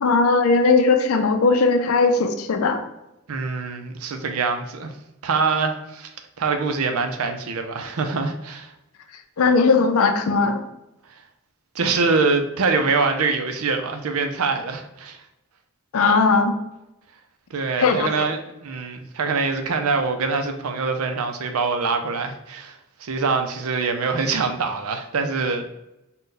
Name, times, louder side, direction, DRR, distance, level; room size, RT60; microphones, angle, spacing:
voice 1, 0.0-2.8 9.4-10.6 15.9-16.6 17.8-18.2, left 4 dB, 75° left, 7 dB, 0.5 m, -18 dB
voice 2, 3.3-4.9 5.2-6.1 6.4-8.7 11.7-15.2 17.5-25.7, right 4 dB, 80° right, 6 dB, 0.5 m, -24 dB
4.0 x 2.2 x 3.7 m, 0.91 s
head